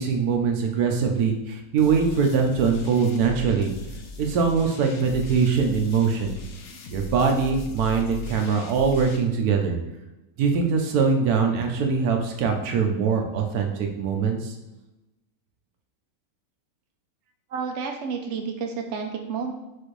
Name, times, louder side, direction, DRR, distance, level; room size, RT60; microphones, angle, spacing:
voice 1, 0.0-3.7 4.2-6.3 6.9-9.8 10.4-14.5, right 5 dB, 80° right, 3 dB, 1.2 m, -22 dB
sound 1, 1.8-9.2, left 2 dB, 75° left, 1.1 m, -39 dB
voice 2, 17.5-19.5, right 5 dB, 65° right, 3 dB, 0.8 m, -30 dB
6.2 x 2.5 x 3.1 m, 0.99 s
omnidirectional pair, 1.6 m